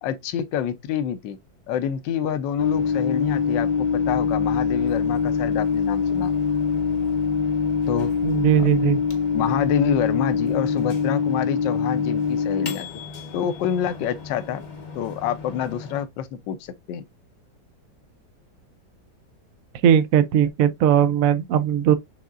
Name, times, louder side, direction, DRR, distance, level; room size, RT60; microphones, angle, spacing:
voice 1, 0.0-1.4 1.7-6.3 7.9-8.1 8.6-8.7 9.3-12.9 13.3-14.6 14.9-17.0, left 9 dB, 75° left, 1.3 m, -27 dB
Microwave oven, 2.6-16.0, left 6 dB, 45° left, 0.6 m, -24 dB
voice 2, 8.2-9.0 19.8-21.9, right 9 dB, 70° right, 0.8 m, -18 dB
6.4 x 3.4 x 2.4 m
omnidirectional pair, 2.0 m